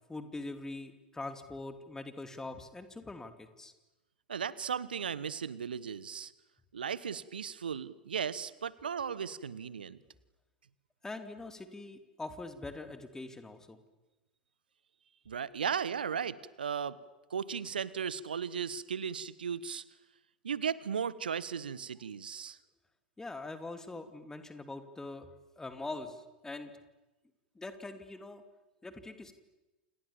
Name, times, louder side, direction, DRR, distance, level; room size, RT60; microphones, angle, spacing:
voice 1, 0.1-3.7 11.0-13.8 23.2-25.3 25.6-26.7 27.5-28.4 28.8-29.3, left 2 dB, 10° left, 9 dB, 2.8 m, -43 dB
voice 2, 4.3-6.3 6.7-10.0 15.2-17.0 17.3-19.8 20.4-22.6, right 7 dB, 70° right, 19 dB, 1.3 m, -36 dB
28.5 x 28.5 x 7.3 m, 1.0 s
figure-of-eight pair, 90°, 5 cm